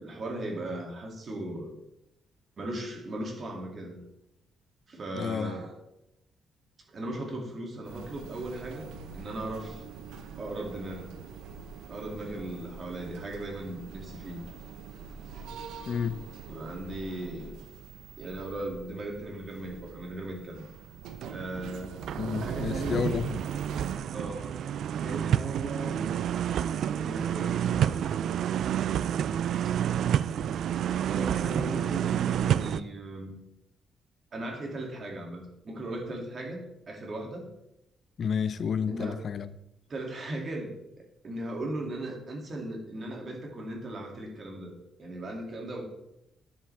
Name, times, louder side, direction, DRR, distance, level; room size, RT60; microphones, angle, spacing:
voice 1, 0.0-1.7 2.6-4.0 4.9-5.7 6.9-9.8 10.4-11.1 11.9-14.4 16.5-17.5 18.2-20.7 21.3-22.1 22.4-23.1 24.1-24.5 25.0-26.1 26.9-28.0 29.6-29.8 31.1-33.4 34.3-37.5 38.9-39.2 39.9-40.7 41.2-44.7 45.0-45.8, right 1 dB, 45° right, 0 dB, 2.6 m, -37 dB
voice 2, 5.1-5.6 15.9-16.2 22.2-23.4 38.2-39.5, left 7 dB, 55° left, 15 dB, 0.5 m, -30 dB
sound 1, 7.9-24.0, right 6 dB, 85° right, 0.8 m, -42 dB
sound 2, 21.2-21.4 21.8-32.8, right 9 dB, 70° right, 0.3 m, -29 dB
10.5 x 7.3 x 3.5 m, 0.83 s
cardioid pair, 90°, 0 cm